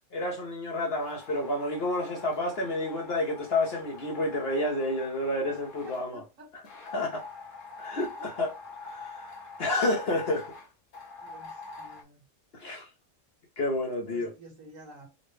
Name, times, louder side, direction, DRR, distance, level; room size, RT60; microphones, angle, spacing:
voice 1, 0.1-6.2 6.9-7.2 7.8-8.5 8.8-9.3 9.6-10.5 12.5-12.9 13.6-14.3, left 1 dB, 55° left, 0.8 m, -30 dB
sound 1, 1.0-6.1 6.7-12.0, left 3 dB, 85° left, 1.2 m, -45 dB
voice 2, 5.8-6.5 6.9-7.0 8.2-8.3 11.2-12.2 14.0-15.1, right 2 dB, 65° right, 1.6 m, -50 dB
3.8 x 2.1 x 3.1 m
omnidirectional pair, 1.5 m